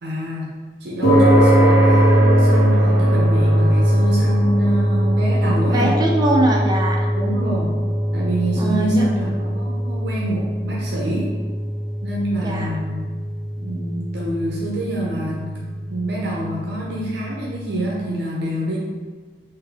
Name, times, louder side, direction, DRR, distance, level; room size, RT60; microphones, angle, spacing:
voice 1, 0.0-5.9 7.1-7.8 8.1-11.3 12.0-13.1 13.6-15.6 15.9-18.8, right 1 dB, 65° right, -4 dB, 0.6 m, -26 dB
sound 1, 1.0-17.5, equal, 80° left, 1.4 m, -20 dB
voice 2, 5.6-7.1 8.6-9.1 12.4-12.7, right 1 dB, 25° right, -1 dB, 0.6 m, -21 dB
3.9 x 2.7 x 3.5 m, 1.5 s
head